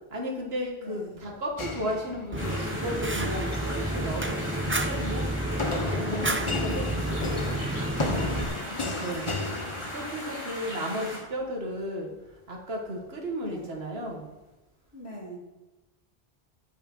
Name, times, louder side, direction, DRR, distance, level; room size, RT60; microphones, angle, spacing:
voice 1, 0.1-5.2 5.9-7.4 9.0-9.3 9.9-12.1 12.5-14.3, equal, 75° right, 0 dB, 1.9 m, -34 dB
voice 2, 0.8-1.2 6.1-6.8 8.4-8.9 13.4-13.7 14.9-15.4, equal, 90° left, -3 dB, 3.5 m, -43 dB
sound 1, 1.6-2.7 3.3-3.8 5.6-10.4, left 2 dB, 30° left, 0.9 m, -33 dB
sound 2, 2.3-11.2, equal, 50° left, 4.6 m, -38 dB
Fire, 2.3-8.4, right 1 dB, 15° right, 0.5 m, -30 dB
10.5 x 7.1 x 6.1 m, 1.1 s
omnidirectional pair, 1.0 m